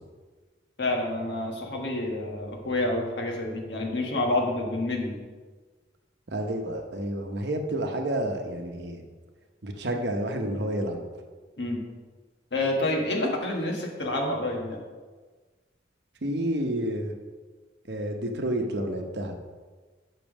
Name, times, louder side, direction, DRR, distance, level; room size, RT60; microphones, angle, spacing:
voice 1, 0.8-5.2 11.6-11.8 12.5-14.8, left 2 dB, 65° left, 0 dB, 1.4 m, -28 dB
voice 2, 6.3-9.0 9.6-11.0 16.2-17.1 17.9-19.3, right 1 dB, 60° right, 4 dB, 0.8 m, -30 dB
5.9 x 5.4 x 6.1 m, 1.4 s
head